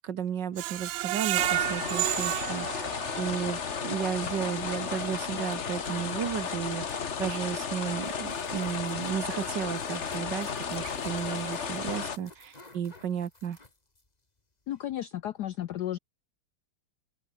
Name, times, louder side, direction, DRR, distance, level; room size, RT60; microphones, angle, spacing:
voice 1, 0.0-13.6, right 8 dB, 55° right, 1.8 m, -34 dB
Screech, 0.6-3.6 4.0-4.1 4.5-4.6, right 17 dB, 75° right, 1.1 m, -31 dB
sound 1, 1.4-12.2, left 6 dB, 35° left, 1.4 m, -34 dB
sound 2, 4.7-14.1 14.4-14.5 14.7-14.8, left 2 dB, 20° left, 2.3 m, -53 dB
voice 2, 14.7-16.0, left 12 dB, 70° left, 1.0 m, -33 dB
omnidirectional pair, 2.4 m